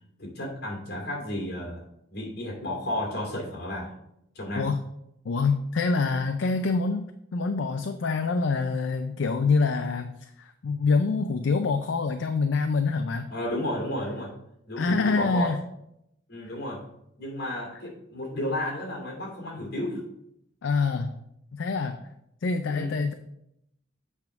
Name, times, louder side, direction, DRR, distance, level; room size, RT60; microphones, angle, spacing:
voice 1, 0.2-1.8 2.1-3.9 4.3-4.7 13.3-14.4 14.7-15.6 16.3-16.9 17.2-20.0 22.6-23.0, left 1 dB, 55° left, -1 dB, 2.4 m, -32 dB
voice 2, 5.3-7.0 7.3-10.1 10.4-13.3 14.8-15.6 20.6-21.1 21.5-22.0 22.4-23.1, left 4 dB, 70° left, 8 dB, 0.5 m, -25 dB
8.2 x 3.6 x 5.8 m, 0.80 s
head